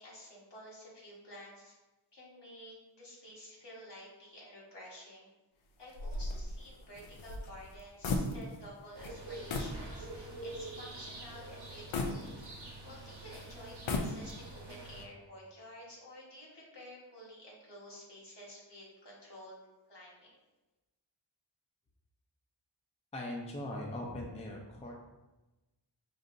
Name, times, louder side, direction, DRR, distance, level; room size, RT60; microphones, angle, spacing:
voice 1, 0.0-1.8 2.1-5.3 5.8-12.3 12.8-19.6 19.9-20.3, equal, 60° left, -5 dB, 1.4 m, -51 dB
sound 1, 5.9-8.8 9.0-9.2 9.5-9.8 10.3-10.4 11.9-12.9 13.7-14.6, left 2 dB, 80° left, 0.6 m, -36 dB
sound 2, 8.9-15.0, right 2 dB, 60° right, 0.9 m, -46 dB
voice 2, 23.1-25.0, left 1 dB, 15° left, -1 dB, 0.5 m, -40 dB
5.2 x 2.7 x 2.5 m, 1.1 s
wide cardioid pair, 75°, 46 cm